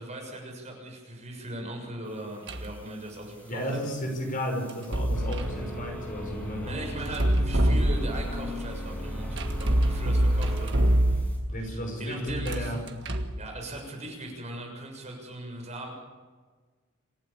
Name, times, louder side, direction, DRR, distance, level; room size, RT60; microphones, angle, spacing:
voice 1, 0.0-3.8 6.6-10.8 11.6-12.7 13.4-15.9, right 1 dB, 30° right, 1 dB, 7.0 m, -39 dB
sound 1, 2.5-2.8 4.7-5.6 7.1-8.4 9.4-11.6 12.3-13.4, right 1 dB, 55° right, 1.8 m, -25 dB
sound 2, 2.7-11.4, equal, 5° left, 7.4 m, -37 dB
voice 2, 3.4-7.0 11.5-12.8, equal, 40° left, 2 dB, 5.8 m, -33 dB
28.0 x 16.0 x 7.4 m, 1.4 s
head